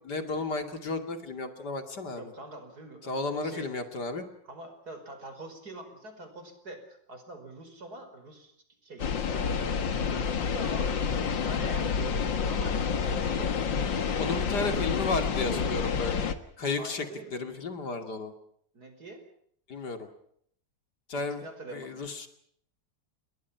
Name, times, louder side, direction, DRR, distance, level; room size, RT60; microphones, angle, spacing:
voice 1, 0.0-2.3 3.0-4.2 14.2-16.3 16.6-17.1 17.3-18.3 19.7-20.1 21.1-21.4 21.7-22.3, left 3 dB, 65° left, 7 dB, 3.2 m, -33 dB
voice 2, 2.2-3.7 4.5-8.6 8.8-14.3 14.7-14.9 15.5-15.8 16.6-17.3 18.7-19.2 21.1-22.0, right 2 dB, 55° right, 7 dB, 5.6 m, -45 dB
sound 1, 9.0-16.3, left 6 dB, 85° left, 2.4 m, -29 dB
30.0 x 22.0 x 5.9 m, 0.67 s
omnidirectional pair, 2.0 m